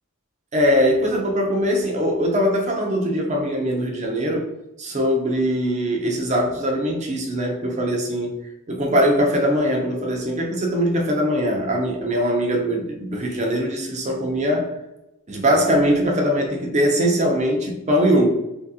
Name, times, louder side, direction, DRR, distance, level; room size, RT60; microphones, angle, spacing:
voice 1, 0.5-4.4 4.8-8.3 8.7-14.8 15.3-18.3, equal, 30° right, 1 dB, 0.7 m, -21 dB
3.1 x 2.8 x 3.6 m, 0.93 s
head